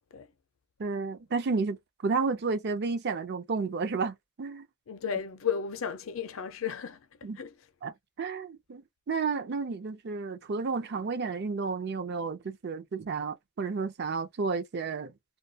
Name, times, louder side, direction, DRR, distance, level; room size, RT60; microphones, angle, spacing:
voice 1, 0.8-1.8 2.0-4.7 7.2-7.4 7.8-15.1, right 4 dB, 50° right, 0.5 m, -32 dB
voice 2, 4.9-7.1 7.4-7.5, left 7 dB, 65° left, 0.5 m, -34 dB
2.3 x 2.2 x 2.7 m
head